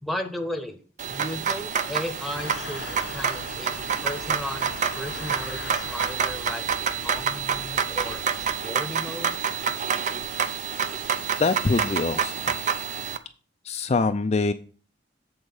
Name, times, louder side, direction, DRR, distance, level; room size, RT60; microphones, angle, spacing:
voice 1, 0.0-0.8 1.1-3.7 4.0-6.7 7.0-9.4, left 1 dB, ahead, 4 dB, 1.0 m, -35 dB
sound 1, 1.0-13.2, right 7 dB, 40° right, 0.6 m, -28 dB
sound 2, 2.3-8.7, left 5 dB, 70° left, 0.7 m, -41 dB
voice 2, 11.4-12.6 13.6-14.5, left 3 dB, 35° left, 8 dB, 0.4 m, -24 dB
8.0 x 4.3 x 6.9 m, 0.39 s
head